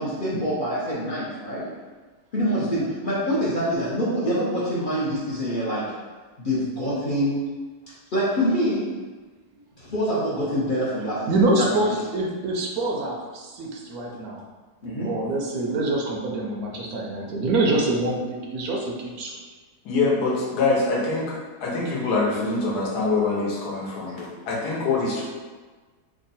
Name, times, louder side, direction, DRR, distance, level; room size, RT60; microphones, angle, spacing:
voice 1, 0.0-1.6 2.3-5.9 6.4-7.4 8.1-8.9 9.8-11.2 11.6-11.9 14.8-15.1 24.1-24.2, equal, 45° left, -9 dB, 0.6 m, -25 dB
voice 2, 11.3-14.4 15.0-19.4, right 2 dB, 70° right, -1 dB, 1.1 m, -25 dB
voice 3, 19.8-21.3 21.6-25.2, left 3 dB, 80° left, -4 dB, 1.3 m, -24 dB
3.5 x 2.2 x 4.0 m, 1.4 s
omnidirectional pair, 1.7 m